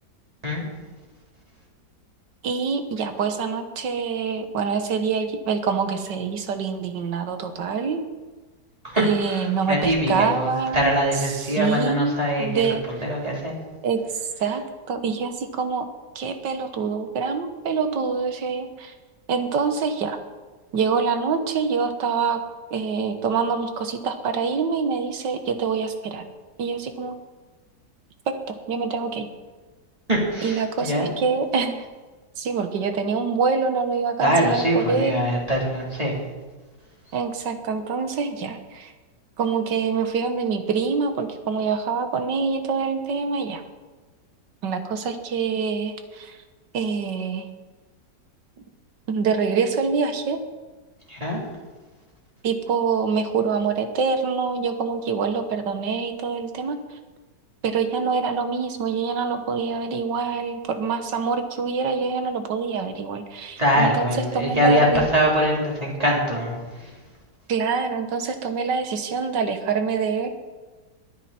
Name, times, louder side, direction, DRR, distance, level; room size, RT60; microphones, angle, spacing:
voice 1, 2.4-8.0 9.0-10.9 11.3-12.8 13.8-14.0 14.4-14.6 14.9-15.9 16.2-18.9 19.3-20.2 20.7-22.4 22.7-26.2 26.6-27.2 28.5-29.3 30.4-31.9 32.4-35.3 37.1-38.9 39.4-43.6 44.6-46.4 46.7-47.5 49.1-50.4 52.4-56.8 57.6-65.1 67.5-70.3, right 5 dB, 80° right, 8 dB, 1.9 m, -25 dB
voice 2, 8.8-12.6 12.9-13.5 30.1-31.1 34.2-36.2 51.1-51.4 63.6-66.9, equal, 20° right, -4 dB, 3.9 m, -23 dB
21.0 x 9.8 x 4.4 m, 1.3 s
omnidirectional pair, 1.9 m